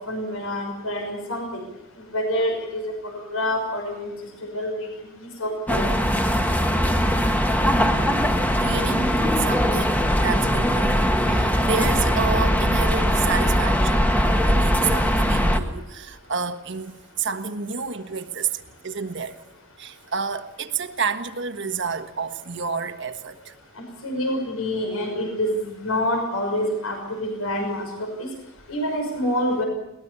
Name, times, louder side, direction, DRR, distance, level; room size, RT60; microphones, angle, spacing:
voice 1, 0.0-1.6 2.1-4.1 4.5-4.9 5.2-5.8 24.0-28.3 28.7-29.6, left 1 dB, 85° left, 4 dB, 6.0 m, -27 dB
sound 1, 5.7-15.6, equal, 10° left, 1.5 m, -20 dB
voice 2, 8.6-11.0 11.2-19.4 19.8-23.6, right 6 dB, 60° right, 8 dB, 1.5 m, -30 dB
22.0 x 20.0 x 6.9 m, 0.93 s
head